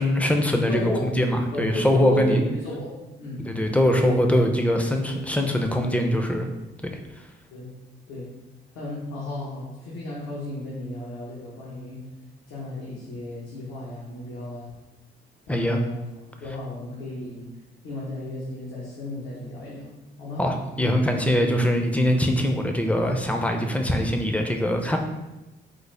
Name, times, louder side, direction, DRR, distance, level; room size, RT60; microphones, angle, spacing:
voice 1, 0.0-2.4 3.4-6.5 15.5-15.8 20.4-25.0, equal, 5° left, 4 dB, 0.4 m, -22 dB
voice 2, 0.7-1.1 1.5-4.0 7.5-7.7 8.1-8.3 8.7-12.0 12.5-14.7 15.5-16.0 16.4-17.5 17.8-19.9 20.2-20.4 20.7-21.0, left 1 dB, 85° left, -7 dB, 0.9 m, -34 dB
3.7 x 2.0 x 3.2 m, 1.0 s
cardioid pair, 90°, 20 cm